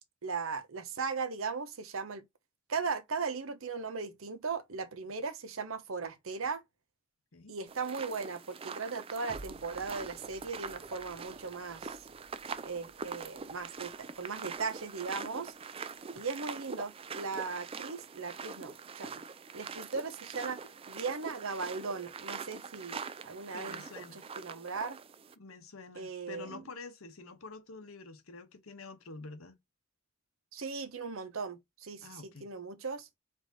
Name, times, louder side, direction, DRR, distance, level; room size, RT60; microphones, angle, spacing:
voice 1, 0.2-2.3 2.7-6.6 7.5-12.0 12.6-15.5 16.1-19.2 19.5-20.6 20.9-23.8 24.1-25.0 25.9-26.6 30.5-33.1, right 4 dB, 70° right, 0.8 m, -38 dB
sound 1, 7.7-25.3, right 5 dB, 25° right, 0.3 m, -44 dB
sound 2, 9.3-17.8 18.3-18.4, right 1 dB, 85° right, 1.1 m, -58 dB
voice 2, 23.5-24.2 25.4-29.6 32.0-32.5, left 3 dB, 75° left, 1.0 m, -48 dB
4.9 x 2.6 x 4.0 m
head